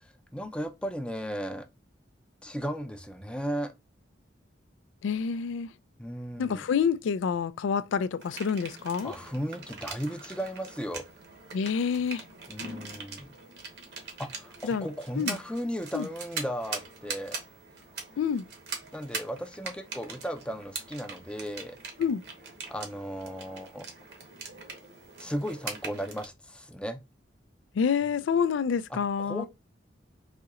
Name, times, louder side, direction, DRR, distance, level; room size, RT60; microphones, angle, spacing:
voice 1, 0.0-1.6 2.4-3.7 6.0-6.6 9.0-11.0 12.5-13.3 14.2-17.4 18.9-21.8 22.7-23.8 25.2-27.0 28.9-29.5, equal, 5° left, 0.4 m, -35 dB
voice 2, 5.0-5.7 6.4-9.1 11.5-12.2 14.6-14.9 15.2-15.4 15.9-16.1 18.2-18.4 22.0-22.2 27.7-29.5, left 6 dB, 85° left, 0.3 m, -28 dB
sound 1, 8.2-26.3, right 4 dB, 60° right, 1.0 m, -42 dB
4.1 x 2.8 x 2.3 m
head